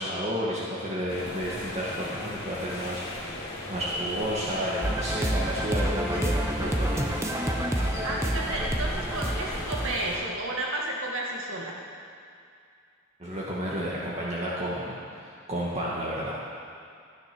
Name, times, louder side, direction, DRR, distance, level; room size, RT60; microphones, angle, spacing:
voice 1, 0.0-3.3 3.7-7.2 13.2-16.4, equal, 30° right, -6 dB, 1.8 m, -31 dB
sound 1, 1.1-10.2, left 1 dB, 50° left, 2.6 m, -37 dB
sound 2, 4.8-10.0, right 1 dB, 15° right, 0.8 m, -28 dB
voice 2, 8.0-11.8, right 1 dB, 70° right, -2 dB, 1.9 m, -32 dB
14.5 x 9.7 x 6.1 m, 2.4 s
head